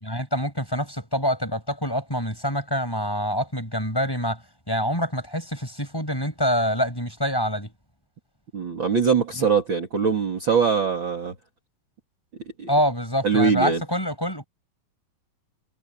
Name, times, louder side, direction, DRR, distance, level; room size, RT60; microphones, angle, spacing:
voice 1, 0.0-4.4 4.7-7.7 9.4-9.5 12.7-14.5, equal, 5° left, 6.8 m, -26 dB
voice 2, 8.5-11.3 12.6-12.7 13.2-13.8, right 6 dB, 35° right, 3.2 m, -22 dB
omnidirectional pair, 3.9 m